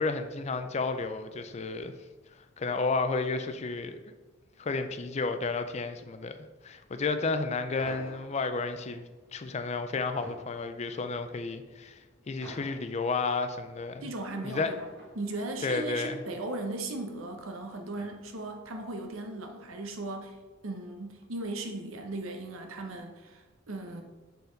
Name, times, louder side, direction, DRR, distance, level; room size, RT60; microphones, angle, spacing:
voice 1, 0.0-1.9 2.6-4.1 4.6-6.3 6.6-12.0 12.3-14.1 14.4-14.7 15.6-16.2, left 3 dB, 35° left, 8 dB, 0.4 m, -32 dB
sound 1, 7.8-18.7, right 1 dB, 60° right, 1.8 m, -53 dB
voice 2, 14.0-14.9 15.1-20.4 20.6-24.0, right 2 dB, 85° right, 4 dB, 0.9 m, -37 dB
6.7 x 4.0 x 3.9 m, 1.3 s
head